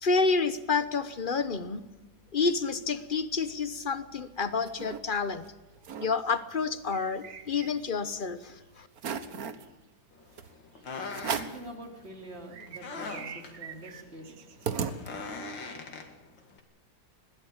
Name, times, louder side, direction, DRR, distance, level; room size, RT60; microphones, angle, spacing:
voice 1, 0.0-1.8 2.3-5.4 6.0-8.9, left 4 dB, 35° left, 13 dB, 0.9 m, -29 dB
sound 1, 4.2-5.0 5.4-5.5 5.8-6.1 6.5-8.1 8.5-8.6 9.0-9.7 10.4-10.5 11.1-11.7 12.2-12.3 12.5-15.5, right 7 dB, 55° right, 1.5 m, -37 dB
sound 2, 10.1-16.6, left 4 dB, 70° left, 2.8 m, -42 dB
voice 2, 11.3-14.4, right 1 dB, 30° right, 3 dB, 3.5 m, -45 dB
21.5 x 15.5 x 8.9 m, 1.1 s
omnidirectional pair, 2.1 m